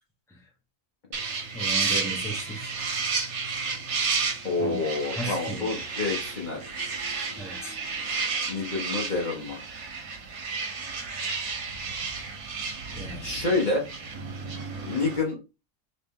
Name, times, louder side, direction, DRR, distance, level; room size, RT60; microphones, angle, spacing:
sound 1, 1.1-15.2, right 4 dB, 60° right, 1.2 m, -32 dB
voice 1, 1.5-2.7 4.6-4.8 5.2-5.7 7.4-7.7 12.9-13.3, right 1 dB, ahead, 0.9 m, -36 dB
voice 2, 4.4-6.6 8.5-9.7 13.2-13.9 14.8-15.4, left 3 dB, 40° left, 1.0 m, -28 dB
3.3 x 3.1 x 3.5 m
omnidirectional pair, 1.4 m